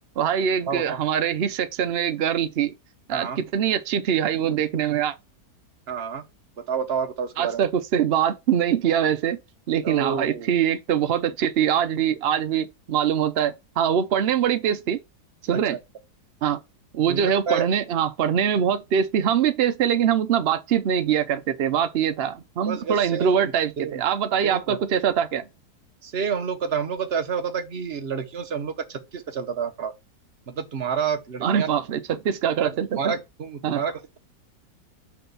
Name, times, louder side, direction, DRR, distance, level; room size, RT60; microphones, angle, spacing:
voice 1, 0.2-2.7 3.1-5.1 7.4-9.4 9.7-15.0 15.4-15.8 16.4-16.6 16.9-25.5 31.4-33.1 33.6-33.8, right 8 dB, 85° right, 0.5 m, -23 dB
voice 2, 0.7-1.0 3.1-3.4 5.9-6.2 6.7-7.6 9.8-10.5 15.7-15.8 17.1-17.7 22.6-23.4 23.8-24.0 24.4-24.8 26.0-29.9 30.5-31.7 32.6-34.2, right 6 dB, 45° right, 1.0 m, -29 dB
5.9 x 4.2 x 5.4 m
omnidirectional pair, 1.8 m